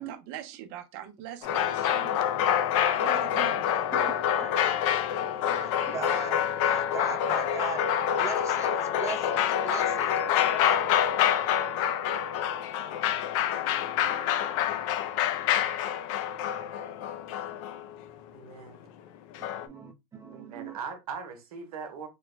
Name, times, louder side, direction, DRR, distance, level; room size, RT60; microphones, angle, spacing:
voice 1, 0.0-2.3 2.9-3.7, right 10 dB, 60° right, 0.7 m, -42 dB
sound 1, 1.4-18.0 19.3-19.7, left 10 dB, 65° left, 0.5 m, -27 dB
voice 2, 3.9-4.5 5.4-7.8 8.1-10.8 13.7-14.2 14.6-14.8 15.0-15.6 16.1-17.0 19.4-20.8, right 6 dB, 15° right, 0.6 m, -41 dB
voice 3, 18.3-18.8 20.3-22.1, right 5 dB, 85° right, 1.0 m, -40 dB
3.1 x 2.2 x 3.2 m
supercardioid pair, 120°, 18 cm